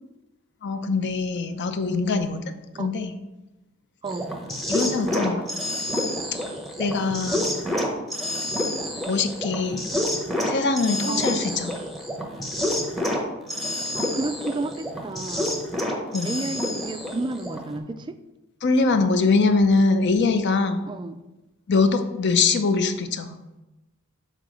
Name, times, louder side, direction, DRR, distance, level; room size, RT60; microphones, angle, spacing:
voice 1, 0.6-2.4 2.8-3.2 4.7-5.4 6.8-7.5 9.1-9.9 10.5-11.7 16.1-16.4 18.6-20.8 21.7-23.4, left 4 dB, 55° left, 8 dB, 0.6 m, -22 dB
sound 1, 4.1-17.8, left 1 dB, ahead, 0.8 m, -28 dB
voice 2, 13.7-15.6 16.2-18.2 20.9-21.2, right 2 dB, 20° right, 9 dB, 0.3 m, -32 dB
6.7 x 3.7 x 5.1 m, 1.0 s
head